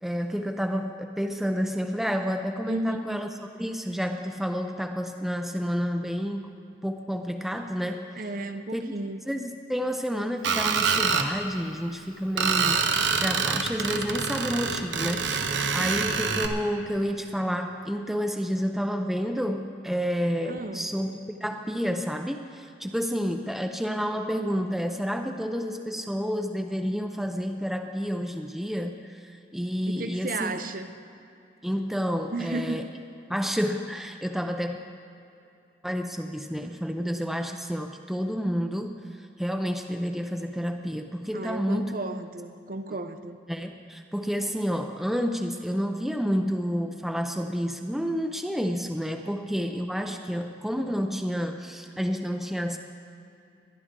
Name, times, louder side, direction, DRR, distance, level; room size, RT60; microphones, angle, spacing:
voice 1, 0.0-3.3 3.6-6.6 6.8-8.2 8.7-9.0 9.3-30.5 31.6-32.9 33.3-34.8 35.8-42.0 43.5-52.8, equal, ahead, 5 dB, 0.5 m, -30 dB
voice 2, 2.7-3.1 8.2-9.2 20.4-20.9 29.9-30.9 32.3-32.9 41.3-43.4, right 2 dB, 50° right, 8 dB, 0.6 m, -33 dB
Screech, 10.4-11.3 12.4-16.5, right 5 dB, 90° right, 0.9 m, -26 dB
21.5 x 11.5 x 3.7 m, 2.7 s
head